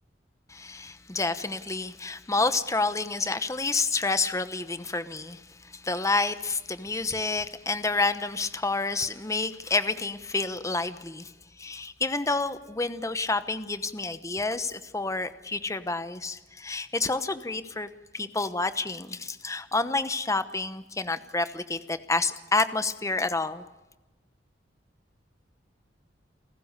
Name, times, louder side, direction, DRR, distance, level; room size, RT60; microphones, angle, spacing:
voice 1, 0.5-11.3 11.6-23.6, left 3 dB, 15° left, 1.0 m, -29 dB
29.0 x 15.0 x 6.7 m
head